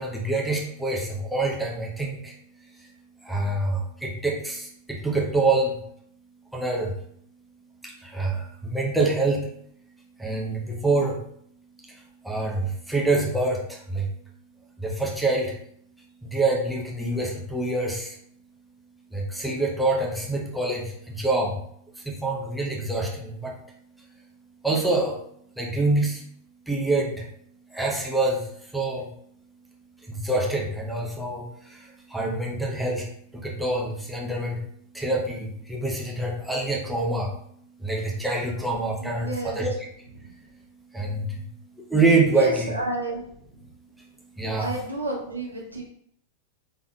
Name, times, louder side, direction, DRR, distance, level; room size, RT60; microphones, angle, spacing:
voice 1, 0.0-2.9 3.2-5.8 6.5-7.0 7.8-9.5 10.2-11.2 11.8-14.1 14.8-15.6 16.2-18.2 19.1-21.6 21.9-23.6 24.0-24.2 24.6-25.2 25.5-26.2 26.6-27.3 27.7-29.1 30.0-39.7 40.0-42.7 43.6-44.7, right 2 dB, ahead, -2 dB, 0.9 m, -26 dB
voice 2, 39.0-39.6 40.2-40.3 42.3-43.2 43.5-43.7 44.5-45.8, right 2 dB, 85° right, -2 dB, 0.7 m, -31 dB
5.3 x 3.5 x 2.3 m, 0.67 s
figure-of-eight pair, 90°, 0 cm